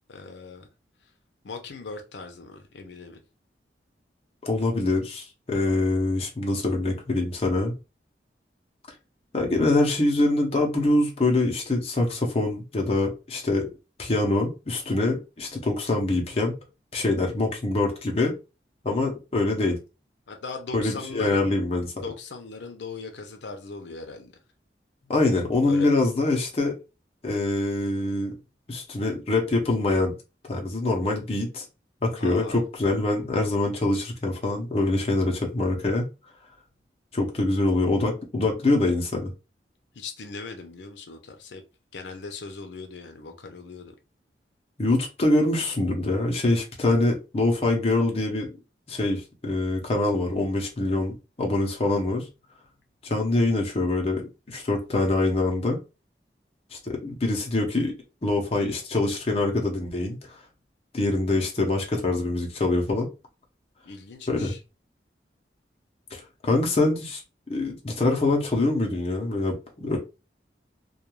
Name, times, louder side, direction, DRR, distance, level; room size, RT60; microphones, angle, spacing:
voice 1, 0.1-0.7 1.4-3.2 20.3-21.6 21.9-24.3 25.7-25.9 32.2-32.6 39.9-41.6 41.9-44.0 63.8-64.6, left 4 dB, 80° left, 0.5 m, -39 dB
voice 2, 4.4-7.7 9.3-13.7 14.0-16.6 16.9-18.3 18.8-19.8 20.7-21.9 25.1-26.8 27.2-28.3 28.7-30.1 30.5-31.6 32.0-36.1 37.1-39.3 44.8-48.5 48.9-52.3 53.0-55.8 56.7-57.9 58.2-60.4 60.9-63.1 64.3-64.5 66.1-67.2 67.5-70.0, left 2 dB, 35° left, 0.6 m, -24 dB
2.3 x 2.2 x 3.0 m
head